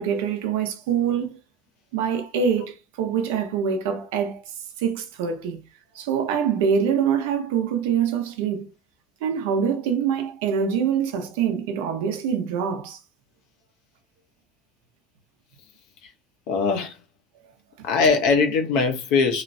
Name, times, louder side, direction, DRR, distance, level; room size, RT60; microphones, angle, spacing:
voice 1, 0.0-1.4 1.9-4.4 4.8-5.6 5.9-8.7 9.2-13.0, right 7 dB, 90° right, 0.6 m, -24 dB
voice 2, 16.5-17.0 17.8-19.4, left 4 dB, 65° left, 0.6 m, -21 dB
3.0 x 2.0 x 2.6 m
cardioid pair, 155°, 0 cm